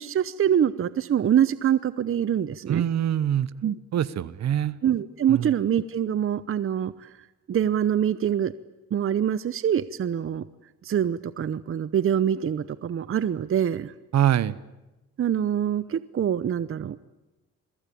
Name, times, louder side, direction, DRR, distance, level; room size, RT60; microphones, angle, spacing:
voice 1, 0.0-2.8 3.6-3.8 4.8-7.2 7.5-8.5 8.9-10.4 10.8-13.9 15.2-17.0, right 9 dB, 45° right, 16 dB, 0.8 m, -25 dB
voice 2, 2.7-3.5 3.9-4.7 5.3-5.5 14.1-14.6, right 10 dB, 60° right, 18 dB, 1.1 m, -24 dB
28.5 x 22.5 x 8.6 m, 1.0 s
cardioid pair, 90°, 30 cm